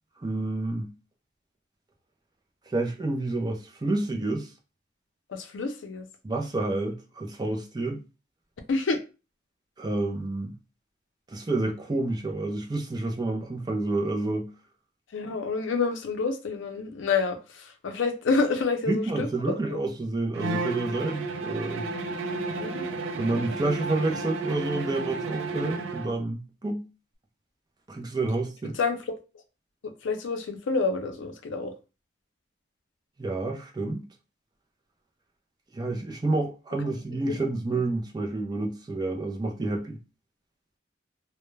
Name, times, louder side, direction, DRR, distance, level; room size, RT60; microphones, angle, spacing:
voice 1, 0.2-0.9 2.7-4.5 6.2-8.0 9.8-10.6 11.3-14.5 18.9-21.9 23.2-26.9 27.9-28.8 33.2-34.1 35.7-40.0, right 2 dB, 20° right, 0.4 m, -29 dB
voice 2, 5.3-6.1 8.7-9.0 15.1-19.8 22.6-22.8 28.7-29.2 29.8-31.7 37.2-37.4, left 4 dB, 85° left, 0.5 m, -28 dB
Bowed string instrument, 20.3-26.2, right 3 dB, 90° right, 0.4 m, -32 dB
2.2 x 2.1 x 3.0 m
head